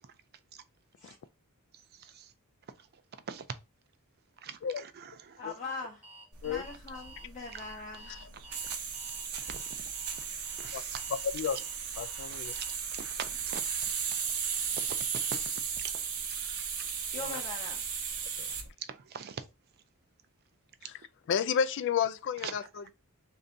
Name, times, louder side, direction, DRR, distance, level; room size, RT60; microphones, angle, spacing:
voice 1, 4.4-5.4 9.5-9.6 10.6-11.0 12.3-13.9 14.7-15.2 15.8-15.9 16.6-16.7 18.8-19.4 22.4-22.6, right 7 dB, 45° right, 0.4 m, -43 dB
voice 2, 5.4-6.0 6.4-8.1 17.1-17.8, left 3 dB, 35° left, 0.7 m, -41 dB
Alarm, 6.0-13.0, right 2 dB, 10° right, 0.9 m, -52 dB
sound 1, 6.3-18.7, right 7 dB, 85° right, 0.8 m, -36 dB
voice 3, 12.0-12.5 17.2-17.4 18.4-18.5 20.8-21.0 21.3-22.9, left 7 dB, 55° left, 0.3 m, -31 dB
3.3 x 2.7 x 3.8 m
head